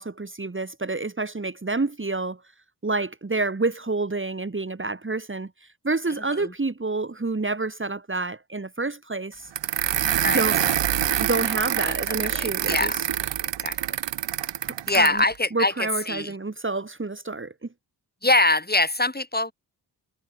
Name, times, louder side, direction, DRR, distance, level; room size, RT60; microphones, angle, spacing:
voice 1, 0.0-2.4 2.8-9.5 10.2-10.6 11.1-13.0 14.6-15.2 15.5-17.7, right 3 dB, 30° right, 2.6 m, -28 dB
sound 1, 9.5-15.2, right 10 dB, 90° right, 2.7 m, -26 dB
voice 2, 11.8-13.0 13.6-14.0 14.9-15.7 16.1-16.3 18.2-19.5, left 2 dB, 20° left, 5.5 m, -24 dB
cardioid pair, 50°, 42 cm